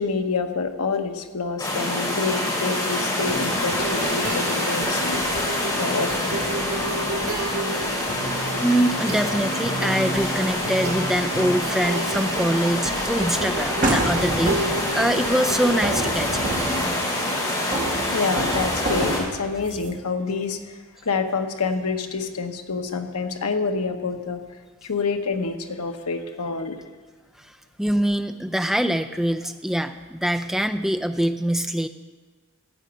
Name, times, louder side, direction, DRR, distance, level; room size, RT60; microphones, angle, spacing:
voice 1, 0.0-5.5 5.8-6.4 18.1-26.8, left 4 dB, 85° left, 6 dB, 1.0 m, -27 dB
sound 1, 1.6-19.2, left 1 dB, 15° left, 3.0 m, -26 dB
sound 2, 3.2-16.9, right 1 dB, 90° right, 2.3 m, -32 dB
voice 2, 8.6-16.5 18.0-18.2 18.4-18.5 27.4-27.5 27.8-31.9, right 1 dB, ahead, 8 dB, 0.4 m, -24 dB
sound 3, 13.8-15.0 15.8-17.3 17.7-19.9, right 1 dB, 35° right, 1.8 m, -28 dB
14.5 x 5.1 x 8.7 m, 1.4 s
head